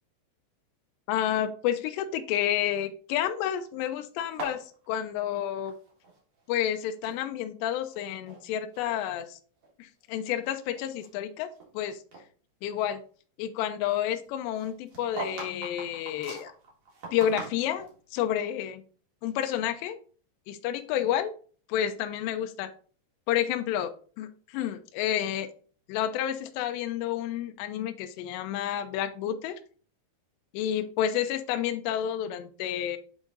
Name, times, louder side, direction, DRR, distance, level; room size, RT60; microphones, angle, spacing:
voice 1, 1.1-5.7 6.5-9.4 9.8-12.0 12.6-13.0 13.4-16.5 17.1-18.8 19.2-20.0 20.5-21.3 21.7-22.7 23.3-23.9 24.2-25.5 25.9-29.6 30.5-33.0, left 10 dB, 85° left, 7 dB, 2.5 m, -30 dB
sound 1, 4.2-6.2 6.4-7.2 7.8-8.4 8.7-9.0 9.6-9.7 10.3-11.8 12.1-12.2 14.5-18.0, right 3 dB, 55° right, 1.5 m, -41 dB
8.0 x 3.9 x 3.8 m, 0.42 s
omnidirectional pair, 5.6 m